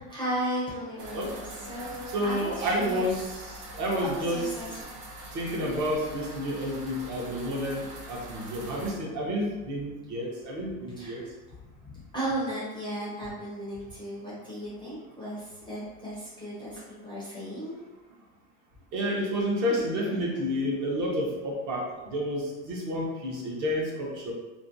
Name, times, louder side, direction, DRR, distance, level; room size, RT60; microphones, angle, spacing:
voice 1, 0.0-3.1 4.0-4.7 6.5-6.7 11.0-11.3 11.9-17.8, right 1 dB, 10° left, -9 dB, 0.4 m, -35 dB
sound 1, 1.0-8.9, right 1 dB, 85° right, 0.8 m, -43 dB
voice 2, 2.1-4.5 5.3-11.2 18.9-24.3, equal, 40° right, -3 dB, 0.6 m, -30 dB
2.5 x 2.1 x 2.5 m, 1.2 s
supercardioid pair, 130°, 46 cm